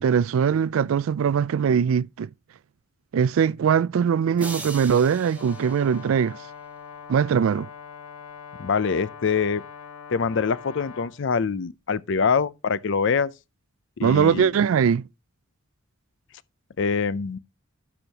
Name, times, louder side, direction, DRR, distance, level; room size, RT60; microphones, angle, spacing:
voice 1, 0.0-2.3 3.1-6.4 7.1-7.7 14.0-15.0, right 7 dB, 75° right, 0.3 m, -21 dB
sound 1, 4.4-6.7, right 2 dB, 5° right, 1.2 m, -40 dB
Brass instrument, 5.3-11.2, left 6 dB, 85° left, 1.4 m, -42 dB
voice 2, 8.6-9.6 10.1-13.3 14.0-14.5 16.8-17.4, left 5 dB, 60° left, 0.5 m, -24 dB
12.0 x 6.3 x 2.9 m
head